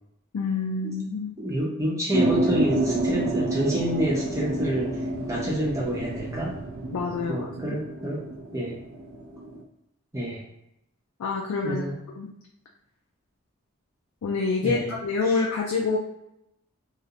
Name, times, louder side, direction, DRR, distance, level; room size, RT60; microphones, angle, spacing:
voice 1, 0.3-1.3 6.9-7.5 11.2-11.8 12.2-12.3 14.2-16.0, left 4 dB, 85° left, -1 dB, 0.4 m, -27 dB
voice 2, 1.4-4.9 5.3-6.5 7.3-8.2 8.5-8.8 10.1-10.4 11.6-11.9 14.6-14.9, right 1 dB, 15° right, -5 dB, 0.6 m, -28 dB
sound 1, 2.1-9.6, right 1 dB, 70° right, 0.4 m, -29 dB
2.3 x 2.0 x 2.8 m, 0.83 s
head